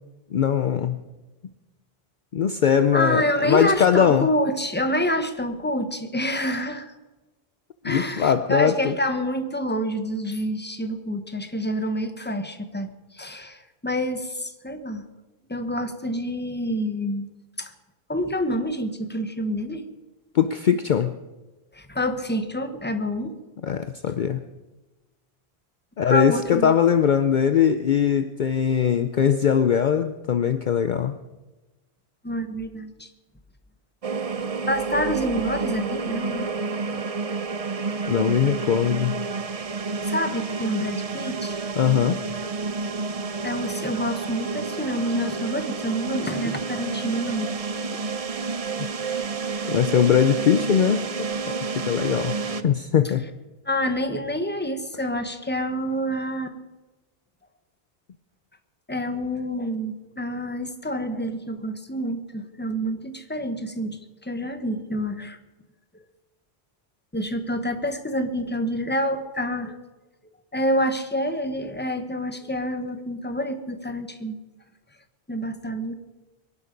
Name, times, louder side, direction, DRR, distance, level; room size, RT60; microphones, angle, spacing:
voice 1, 0.3-1.0 2.3-4.3 7.8-8.9 20.3-21.1 23.6-24.4 26.0-31.2 38.1-39.2 41.8-42.2 48.8-49.2 49.7-52.4 52.6-53.3, left 8 dB, 55° left, 10 dB, 0.7 m, -21 dB
voice 2, 2.9-6.9 7.8-15.0 15.5-17.3 17.6-17.7 18.1-19.9 21.7-23.3 26.1-26.7 32.2-33.1 34.7-36.5 40.0-41.6 43.4-47.5 53.6-56.6 58.9-65.4 67.1-69.7 70.5-74.4 75.3-75.9, equal, 10° left, 8 dB, 1.2 m, -27 dB
sound 1, 34.0-52.6, right 4 dB, 40° right, 0.7 m, -30 dB
23.0 x 11.0 x 5.2 m, 1.1 s
omnidirectional pair, 1.0 m